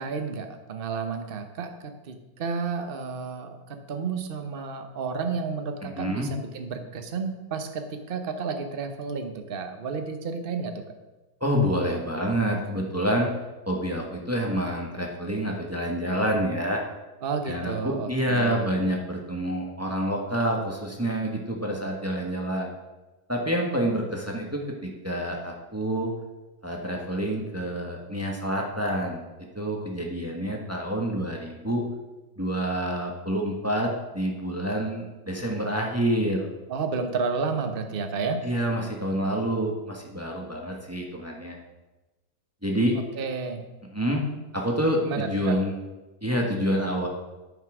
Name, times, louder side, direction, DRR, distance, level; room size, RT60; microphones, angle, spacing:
voice 1, 0.0-3.6 3.9-10.8 17.2-18.7 36.7-38.4 43.2-43.6 45.0-45.6, right 5 dB, 45° right, 6 dB, 0.8 m, -31 dB
voice 2, 5.8-6.3 11.4-13.3 13.7-16.8 17.5-22.7 23.3-26.1 26.6-29.2 29.5-31.9 32.4-36.5 38.4-41.6 42.6-43.0 43.9-44.3 44.5-45.8 46.2-47.1, equal, 10° right, 0 dB, 1.0 m, -27 dB
9.3 x 5.7 x 6.1 m, 1.1 s
omnidirectional pair, 2.1 m